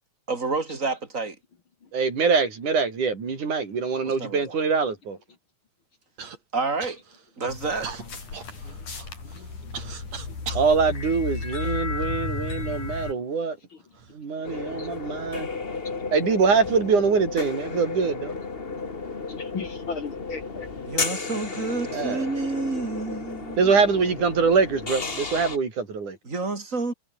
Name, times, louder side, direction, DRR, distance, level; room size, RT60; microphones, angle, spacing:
voice 1, 0.3-1.4 4.0-4.6 6.5-7.0 7.4-7.9 20.9-23.7 26.2-26.9, right 3 dB, 25° right, 4.3 m, -29 dB
voice 2, 1.9-5.2 10.5-13.6 14.1-15.5 16.1-18.4 21.9-22.2 23.6-26.2, right 5 dB, 80° right, 6.2 m, -23 dB
Human voice / Cough, 6.2-6.4 6.8-7.3 7.8-10.7 11.4-12.2 13.0-13.1 13.8-14.1, right 6 dB, 60° right, 4.8 m, -39 dB
sound 1, 7.5-13.1, left 4 dB, 80° left, 7.8 m, -33 dB
voice 3, 14.4-14.9 19.3-20.9, left 5 dB, 45° left, 2.7 m, -36 dB
sound 2, 14.4-25.6, left 4 dB, 25° left, 1.4 m, -33 dB
omnidirectional pair, 3.5 m